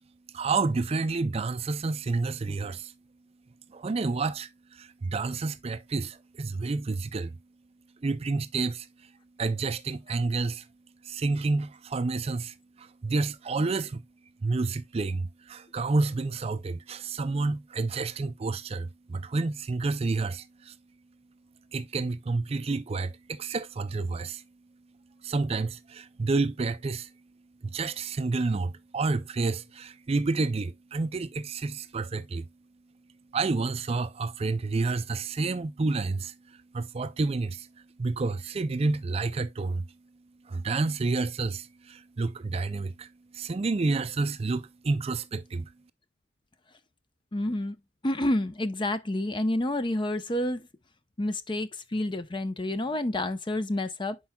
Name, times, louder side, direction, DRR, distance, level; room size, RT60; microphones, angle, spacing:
voice 1, 0.3-2.9 3.7-7.4 8.0-8.9 9.4-10.7 11.0-14.0 14.4-20.7 21.7-24.4 25.2-27.1 27.6-32.5 33.3-37.7 38.0-39.9 40.5-45.7, right 3 dB, 30° right, 0.4 m, -29 dB
voice 2, 47.3-47.8 48.0-50.7 51.2-54.2, left 1 dB, 25° left, 0.7 m, -29 dB
10.0 x 4.6 x 2.3 m
head